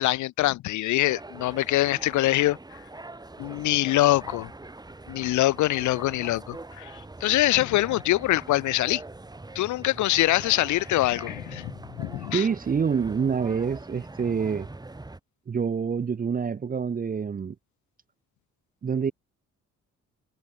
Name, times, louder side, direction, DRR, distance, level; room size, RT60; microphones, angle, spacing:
voice 1, 0.0-2.8 3.4-4.5 5.1-9.0 9.6-11.7 12.0-12.4, left 16 dB, 75° left, 0.6 m, -24 dB
sound 1, 1.1-15.2, right 2 dB, 15° right, 2.0 m, -43 dB
voice 2, 12.3-14.7 15.5-17.6 18.8-19.1, right 6 dB, 30° right, 0.7 m, -26 dB
cardioid pair, 90°, 30 cm